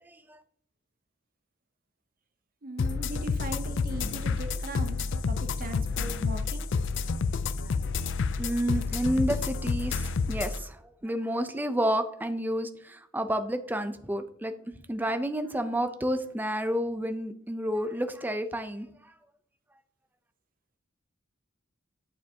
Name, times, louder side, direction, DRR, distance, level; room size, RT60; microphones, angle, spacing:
voice 1, 2.6-6.7, right 1 dB, 45° right, 7 dB, 0.8 m, -39 dB
sound 1, 2.8-10.6, left 4 dB, 60° left, 0.4 m, -29 dB
voice 2, 8.4-10.8 11.0-14.5 14.9-18.9, equal, 10° right, 9 dB, 0.5 m, -30 dB
8.5 x 6.9 x 2.8 m, 0.67 s
head